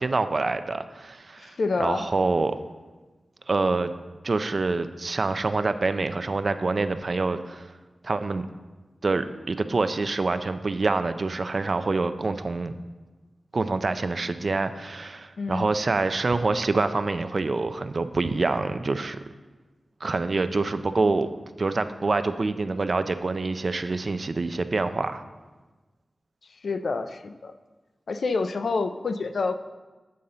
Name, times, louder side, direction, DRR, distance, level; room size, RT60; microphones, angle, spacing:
voice 1, 0.0-2.6 3.5-3.9 4.2-7.7 8.0-8.5 9.0-12.7 13.5-19.2 20.0-21.3 21.6-25.2, right 3 dB, 55° right, 10 dB, 0.4 m, -26 dB
voice 2, 1.4-2.1 15.4-15.7 26.6-27.5 28.1-29.6, left 4 dB, 80° left, 9 dB, 0.4 m, -28 dB
8.6 x 3.8 x 5.5 m, 1.2 s
wide cardioid pair, 65°, 0 cm